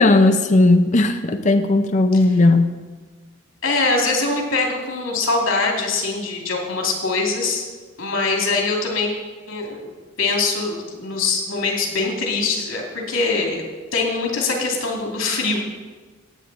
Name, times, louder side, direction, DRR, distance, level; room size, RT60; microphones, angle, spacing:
voice 1, 0.0-2.8, left 2 dB, 40° left, 6 dB, 0.6 m, -16 dB
voice 2, 3.6-7.7 8.0-9.1 9.5-9.9 10.2-13.7 13.9-15.6, left 3 dB, 80° left, 0 dB, 2.7 m, -23 dB
16.5 x 8.8 x 4.1 m, 1.3 s
head